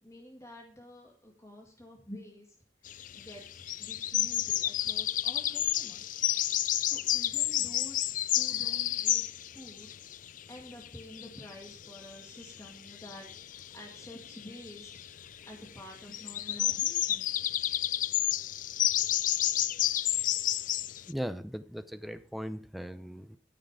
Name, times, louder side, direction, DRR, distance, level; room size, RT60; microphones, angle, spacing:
voice 1, 0.0-2.5 3.2-6.1 6.8-9.9 10.5-14.9 15.2-17.4, left 1 dB, 15° left, -1 dB, 2.0 m, -49 dB
sound 1, 2.9-21.1, left 13 dB, 45° left, 0.4 m, -31 dB
voice 2, 21.1-23.4, equal, ahead, 10 dB, 0.6 m, -38 dB
13.0 x 6.5 x 5.0 m, 0.43 s
head